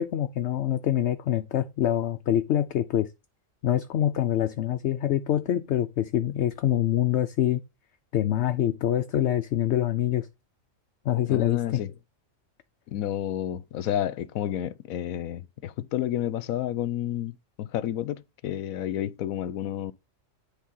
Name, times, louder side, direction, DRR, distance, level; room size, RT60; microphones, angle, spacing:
voice 1, 0.0-3.1 3.6-7.6 8.1-10.3 11.1-11.8, left 11 dB, 60° left, 0.8 m, -25 dB
voice 2, 11.3-11.9 12.9-19.9, left 11 dB, 90° left, 1.1 m, -30 dB
10.0 x 3.6 x 5.4 m
omnidirectional pair, 1.4 m